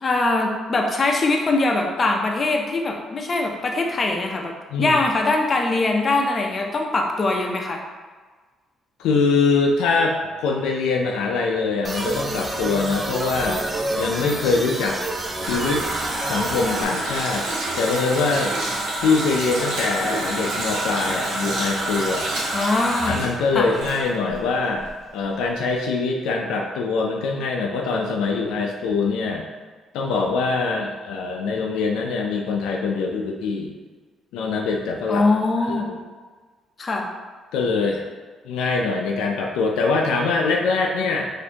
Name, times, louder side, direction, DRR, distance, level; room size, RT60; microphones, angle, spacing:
voice 1, 0.0-4.5 4.8-7.8 22.5-23.2 23.5-23.7 35.1-35.9 36.8-37.1, left 2 dB, 40° left, 2 dB, 0.6 m, -22 dB
voice 2, 9.0-13.6 14.0-15.0 15.4-15.8 16.2-17.4 17.8-18.5 19.0-22.3 23.1-24.9 25.1-29.4 29.9-33.7 34.3-35.2 35.6-36.0 37.5-38.0 38.4-41.3, left 4 dB, 90° left, 0 dB, 0.4 m, -23 dB
sound 1, 11.8-16.8, right 2 dB, 25° right, 0.5 m, -28 dB
Water tap faucet, 14.9-24.5 24.8-24.9, right 1 dB, 85° right, 1.1 m, -28 dB
4.2 x 2.6 x 2.8 m, 1.4 s
cardioid pair, 75°, 0 cm